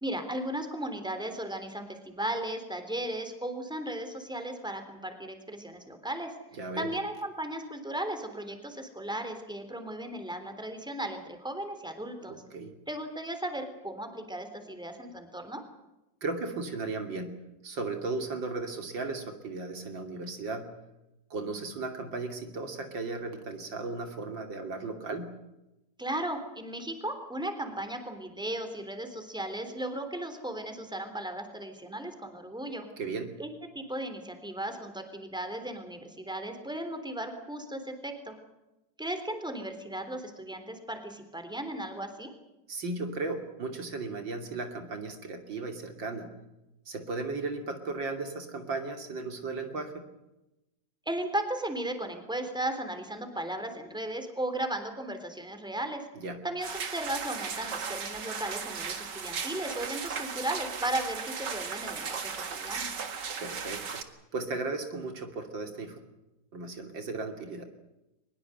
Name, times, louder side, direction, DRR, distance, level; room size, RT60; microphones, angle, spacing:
voice 1, 0.0-6.3 6.8-12.4 12.9-15.6 26.0-32.9 33.4-38.4 39.0-42.3 51.1-56.1 56.4-62.9, right 1 dB, ahead, 7 dB, 3.5 m, -36 dB
voice 2, 6.6-6.9 12.3-12.7 16.2-17.3 17.6-20.7 21.3-25.3 33.0-33.4 42.7-46.3 46.9-50.0 56.2-56.4 63.4-64.0 64.3-66.0 66.5-67.6, right 3 dB, 85° right, 5 dB, 3.5 m, -36 dB
sound 1, 56.6-64.0, right 6 dB, 65° right, 2.4 m, -36 dB
22.5 x 21.5 x 7.9 m, 0.94 s
omnidirectional pair, 2.0 m